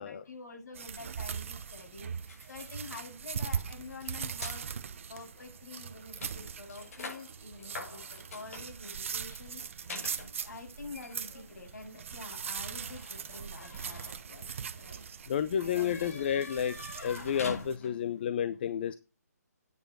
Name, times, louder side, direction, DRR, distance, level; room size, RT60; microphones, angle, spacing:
voice 1, 0.0-4.6 5.1-9.6 10.4-15.0 15.6-16.5, left 3 dB, 75° left, 1 dB, 6.9 m, -47 dB
sound 1, 0.8-17.8, right 7 dB, 50° right, 0.8 m, -41 dB
sound 2, 2.3-4.6 5.3-5.4 5.7-18.2, left 3 dB, 55° left, 5.9 m, -47 dB
voice 2, 15.3-16.8 17.0-19.0, left 9 dB, 35° left, 13 dB, 0.6 m, -31 dB
9.5 x 6.8 x 6.2 m, 0.28 s
hypercardioid pair, 160°, 9 cm